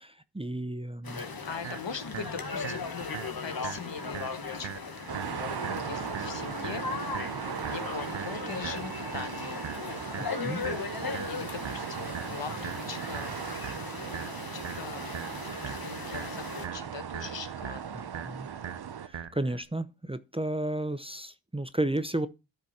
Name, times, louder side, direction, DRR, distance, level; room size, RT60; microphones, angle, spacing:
voice 1, 0.0-1.2 10.4-10.6 17.9-18.5 19.1-22.3, right 1 dB, 15° right, 0.7 m, -33 dB
sound 1, 1.0-16.7, left 4 dB, 55° left, 1.5 m, -38 dB
voice 2, 1.4-3.1 3.4-4.8 5.1-6.8 7.6-9.6 11.3-13.4 13.8-15.2 15.6-18.1, left 6 dB, 75° left, 1.4 m, -41 dB
sound 2, 1.6-19.6, right 9 dB, 90° right, 0.9 m, -42 dB
sound 3, 5.1-19.1, right 8 dB, 60° right, 0.7 m, -38 dB
13.0 x 5.3 x 4.3 m
wide cardioid pair, 60°, 44 cm